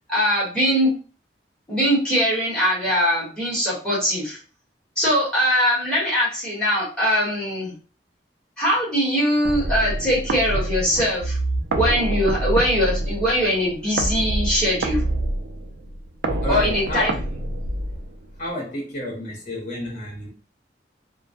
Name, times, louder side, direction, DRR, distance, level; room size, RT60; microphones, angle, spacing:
voice 1, 0.1-0.9 1.7-4.4 5.0-7.7 8.6-11.4 11.7-15.0 16.5-17.1, equal, 5° left, 1.1 m, -21 dB
sound 1, 9.4-18.4, right 2 dB, 75° right, 0.4 m, -26 dB
voice 2, 16.4-17.2 18.4-20.3, left 1 dB, 40° left, 0.9 m, -30 dB
2.2 x 2.1 x 2.7 m
head